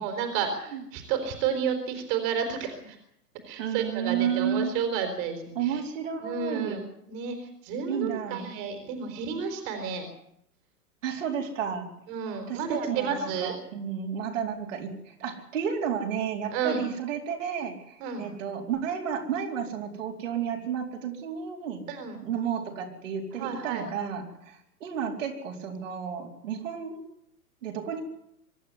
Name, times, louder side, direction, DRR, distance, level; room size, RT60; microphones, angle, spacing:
voice 1, 0.0-3.0 3.5-5.8 6.2-10.1 12.1-13.5 16.5-16.8 18.0-18.3 21.9-22.2 23.4-23.8, right 6 dB, 35° right, 6 dB, 4.1 m, -31 dB
voice 2, 3.6-4.7 5.5-6.8 7.9-8.5 11.0-11.9 12.5-21.8 22.2-27.0 27.6-28.0, right 8 dB, 50° right, 0 dB, 4.4 m, -32 dB
24.5 x 12.5 x 9.8 m, 0.75 s
figure-of-eight pair, 110°, 47 cm